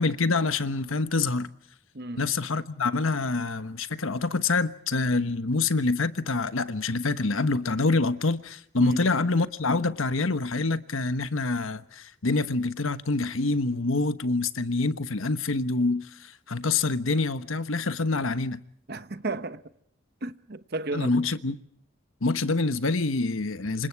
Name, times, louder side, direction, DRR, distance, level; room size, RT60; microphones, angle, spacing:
voice 1, 0.0-1.5 2.2-18.6 20.9-21.5 22.2-23.9, left 3 dB, 75° left, 1.2 m, -26 dB
voice 2, 1.9-2.3 8.8-9.0 18.9-19.6 20.2-21.1, right 2 dB, 50° right, 1.1 m, -33 dB
28.0 x 25.5 x 4.7 m
head